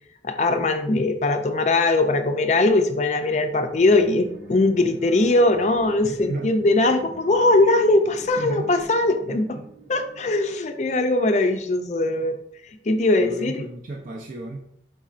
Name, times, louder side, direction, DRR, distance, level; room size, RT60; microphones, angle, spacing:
voice 1, 0.2-9.6 9.9-12.4 12.9-13.6, left 2 dB, 40° left, 8 dB, 0.4 m, -20 dB
sound 1, 3.7-11.2, right 1 dB, 75° right, 1.0 m, -45 dB
sound 2, 5.0-8.2, right 3 dB, 5° left, 0.8 m, -44 dB
voice 2, 6.0-6.5 8.4-8.8 9.2-9.7 13.2-14.6, right 2 dB, 50° right, -1 dB, 0.4 m, -33 dB
4.7 x 4.2 x 2.4 m, 0.73 s
head